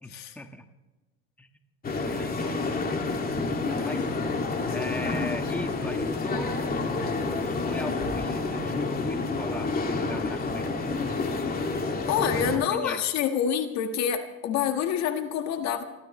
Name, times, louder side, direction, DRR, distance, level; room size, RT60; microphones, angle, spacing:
voice 1, 0.0-0.7 1.4-1.5 2.0-2.8 3.8-4.1 4.6-10.9 12.3-13.0, left 1 dB, 5° left, 6 dB, 1.5 m, -39 dB
sound 1, 1.8-12.6, left 3 dB, 30° left, 2.4 m, -29 dB
voice 2, 12.1-15.8, left 8 dB, 65° left, 7 dB, 1.7 m, -27 dB
29.0 x 13.0 x 3.2 m, 1.2 s
supercardioid pair, 95°, 30 cm